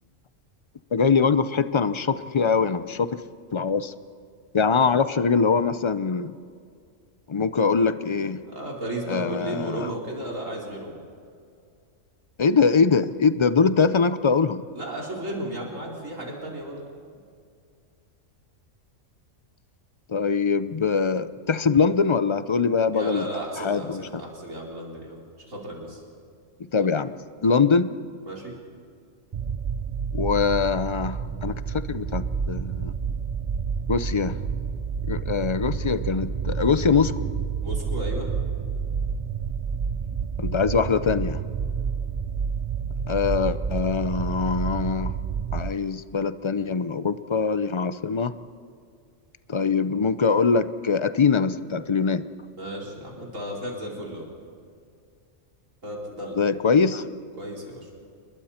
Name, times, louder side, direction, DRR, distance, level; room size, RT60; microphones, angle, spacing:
voice 1, 0.9-3.2 3.5-3.9 4.5-6.3 7.3-8.4 9.1-9.9 12.4-14.6 20.1-23.3 23.6-24.0 26.7-27.1 27.4-27.9 30.1-32.9 33.9-34.4 35.1-37.1 40.4-41.4 43.1-45.1 45.5-48.3 49.5-52.2 56.4-57.0, left 5 dB, 40° left, 13 dB, 0.4 m, -23 dB
voice 2, 8.4-11.0 14.7-16.8 22.9-26.0 28.3-28.5 37.6-38.3 52.6-54.2 55.8-56.4 57.4-57.9, right 1 dB, 85° right, -3 dB, 4.7 m, -34 dB
sound 1, 29.3-45.7, right 6 dB, 45° right, 0.5 m, -29 dB
29.0 x 21.5 x 4.4 m, 2.3 s
omnidirectional pair, 1.3 m